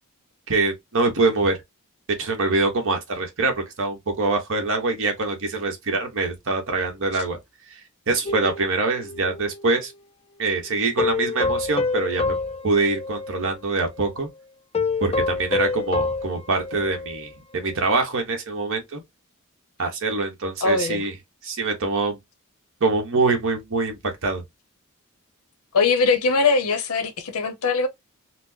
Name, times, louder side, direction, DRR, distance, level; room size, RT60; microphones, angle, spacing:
voice 1, 0.5-1.6 2.2-7.4 8.1-9.9 10.4-12.4 12.6-14.3 15.0-19.0 19.8-21.1 21.4-22.2 22.8-24.4, right 3 dB, 60° right, 1.0 m, -24 dB
sound 1, 8.3-9.8 11.0-13.6 13.9-14.1 14.7-17.3 17.7-17.8, left 3 dB, 25° left, 0.4 m, -27 dB
voice 2, 20.6-21.0 25.7-27.9, left 4 dB, 75° left, 0.7 m, -21 dB
4.3 x 2.0 x 2.6 m
head